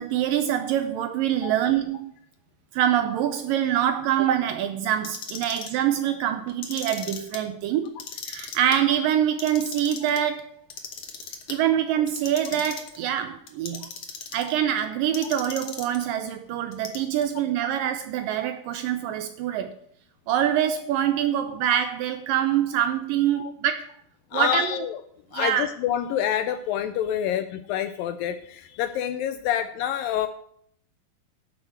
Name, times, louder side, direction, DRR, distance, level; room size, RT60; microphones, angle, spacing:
voice 1, 0.0-2.1 2.7-8.0 8.3-10.5 11.5-13.9 14.3-19.8 20.3-23.9 24.3-24.8 25.3-25.7, right 10 dB, 80° right, 9 dB, 2.1 m, -25 dB
Clock, 4.9-5.8 6.5-7.4 7.9-8.8 9.2-10.2 10.7-11.6 12.1-13.0 13.5-14.5 15.1-16.0 16.7-17.3, left 6 dB, 55° left, 1.9 m, -37 dB
voice 2, 24.3-25.0 25.3-30.3, left 10 dB, 85° left, 10 dB, 2.1 m, -27 dB
10.5 x 6.8 x 7.2 m, 0.65 s
omnidirectional pair, 4.5 m